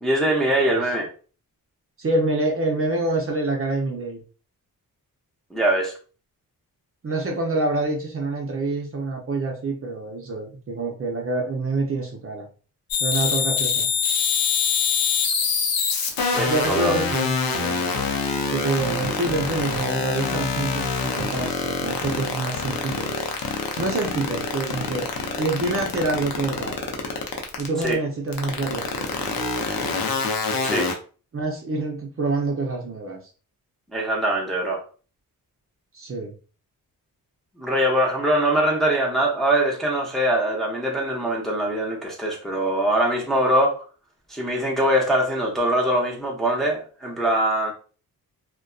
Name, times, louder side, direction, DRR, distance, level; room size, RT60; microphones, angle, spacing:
voice 1, 0.0-1.1 5.5-5.9 16.3-17.0 27.8-28.0 30.6-30.9 33.9-34.8 37.6-43.8 44.3-47.7, right 1 dB, ahead, 0.6 m, -22 dB
voice 2, 2.0-4.2 7.0-12.5 13.0-13.9 16.5-18.1 18.5-23.1 23.8-25.0 25.4-26.7 27.6-29.1 31.3-33.2 35.9-36.3, right 2 dB, 40° right, 0.6 m, -26 dB
sound 1, 12.9-27.9 28.3-30.9, left 6 dB, 75° left, 0.6 m, -24 dB
2.5 x 2.2 x 2.3 m
cardioid pair, 105°, 36 cm